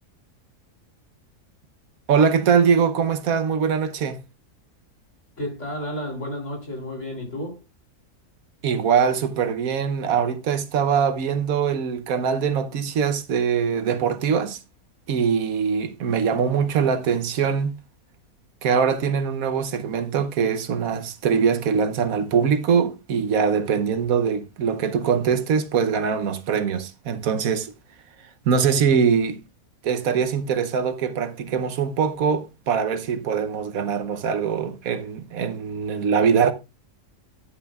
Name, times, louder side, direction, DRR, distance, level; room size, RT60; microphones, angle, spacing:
voice 1, 2.1-4.2 8.6-14.6 15.1-17.8 18.6-27.7 28.4-29.4 29.8-36.5, right 6 dB, 75° right, 1.2 m, -22 dB
voice 2, 5.4-7.6, left 1 dB, 55° left, 3.4 m, -31 dB
10.5 x 10.0 x 2.4 m
omnidirectional pair, 1.5 m